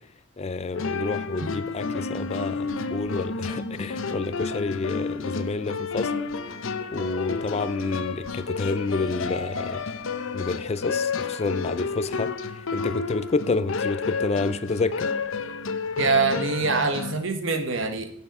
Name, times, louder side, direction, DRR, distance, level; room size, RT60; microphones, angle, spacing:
voice 1, 0.4-6.1 6.9-9.8 10.3-15.1, left 3 dB, 30° left, 0.4 m, -29 dB
sound 1, 0.7-17.2, left 4 dB, 70° left, 0.7 m, -31 dB
voice 2, 16.0-18.1, right 4 dB, 65° right, 1.3 m, -24 dB
9.8 x 7.5 x 4.8 m
head